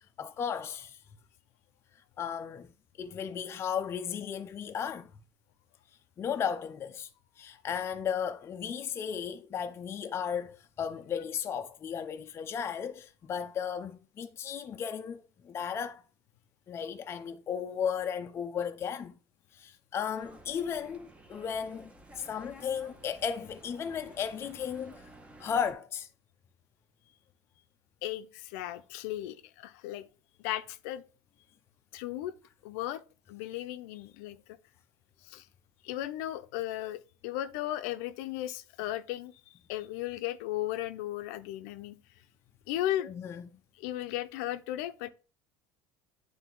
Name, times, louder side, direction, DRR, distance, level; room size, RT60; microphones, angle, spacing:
voice 1, 0.2-1.0 2.2-2.7 3.0-5.1 6.2-7.1 7.4-16.0 16.7-19.1 19.5-25.0 25.4-26.1 43.0-43.5, left 7 dB, 30° left, 0.5 m, -35 dB
sound 1, 20.1-25.7, right 1 dB, 15° right, 1.0 m, -53 dB
voice 2, 28.0-30.0 30.4-31.0 31.9-32.3 32.6-33.0 33.3-34.6 35.2-35.4 35.8-42.0 42.7-43.1 43.8-45.1, left 13 dB, 80° left, 0.6 m, -36 dB
9.2 x 3.3 x 3.8 m
supercardioid pair, 125°, 9 cm